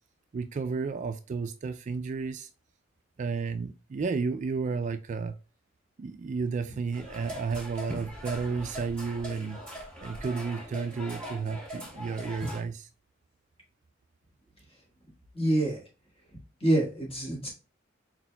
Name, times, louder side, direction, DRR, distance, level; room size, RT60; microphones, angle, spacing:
voice 1, 0.3-2.5 3.2-5.3 6.0-9.6 10.0-12.9, right 5 dB, 40° right, 0.3 m, -32 dB
sound 1, 6.9-12.6, equal, 5° left, 2.0 m, -40 dB
voice 2, 15.3-15.8 16.6-17.5, right 1 dB, 30° left, 1.9 m, -26 dB
4.5 x 4.2 x 2.2 m
head